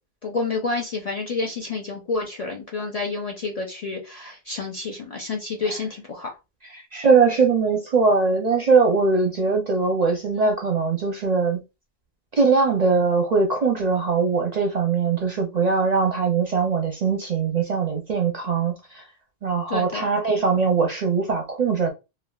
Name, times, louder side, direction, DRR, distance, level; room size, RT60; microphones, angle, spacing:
voice 1, 0.2-6.3 10.4-10.5 19.7-20.1, left 3 dB, 50° left, 0.5 m, -29 dB
voice 2, 6.9-11.6 12.4-19.0 19.4-21.9, right 4 dB, 50° right, 0.5 m, -21 dB
3.3 x 2.3 x 2.2 m
omnidirectional pair, 1.1 m